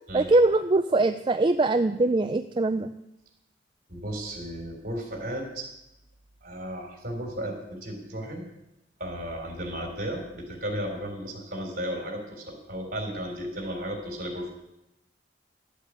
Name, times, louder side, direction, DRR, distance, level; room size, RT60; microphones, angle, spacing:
voice 1, 0.1-2.9, right 2 dB, 25° right, 9 dB, 0.4 m, -22 dB
voice 2, 3.9-5.7 6.4-8.5 9.0-14.5, equal, 50° right, 3 dB, 3.5 m, -34 dB
12.0 x 8.3 x 8.3 m, 0.88 s
head